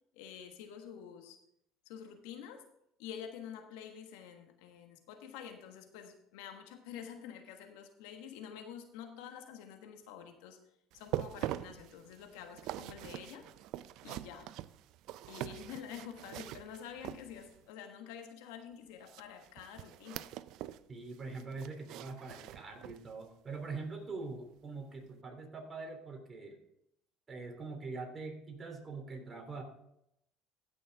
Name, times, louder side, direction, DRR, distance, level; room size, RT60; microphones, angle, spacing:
voice 1, 0.1-1.4 1.8-2.6 3.0-10.6 10.9-13.5 14.0-14.5 15.3-20.3, left 8 dB, 85° left, 6 dB, 1.4 m, -48 dB
sound 1, 10.9-17.7 19.0-20.9 21.1-23.1 23.5-23.7 24.2-24.3, right 14 dB, 70° right, 0.4 m, -43 dB
voice 2, 20.9-26.6 27.3-29.6, right 3 dB, 30° right, 3 dB, 3.2 m, -43 dB
16.0 x 6.5 x 3.6 m, 0.78 s
supercardioid pair, 90°, 0 cm